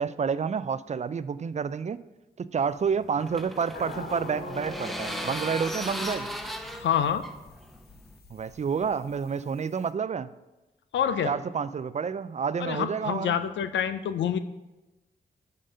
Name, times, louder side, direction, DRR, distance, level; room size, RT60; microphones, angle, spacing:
voice 1, 0.0-2.0 2.4-6.3 8.3-10.3 11.2-13.4, right 6 dB, 40° right, 15 dB, 0.4 m, -29 dB
sound 1, 2.7-8.2, equal, ahead, 0.7 m, -37 dB
sound 2, 3.7-9.9, left 3 dB, 60° left, 0.8 m, -45 dB
voice 2, 6.8-7.3 10.9-11.3 12.6-14.4, left 8 dB, 85° left, 11 dB, 0.4 m, -27 dB
5.5 x 5.2 x 5.4 m, 1.0 s
cardioid pair, 50°, 19 cm